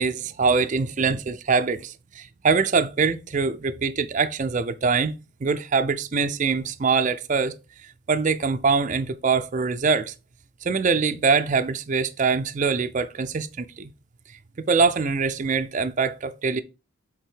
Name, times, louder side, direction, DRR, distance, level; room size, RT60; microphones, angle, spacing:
voice 1, 0.0-5.1 5.4-7.5 8.1-10.1 10.6-13.9 14.7-16.6, right 5 dB, 35° right, 0.4 m, -23 dB
8.0 x 3.5 x 4.6 m
head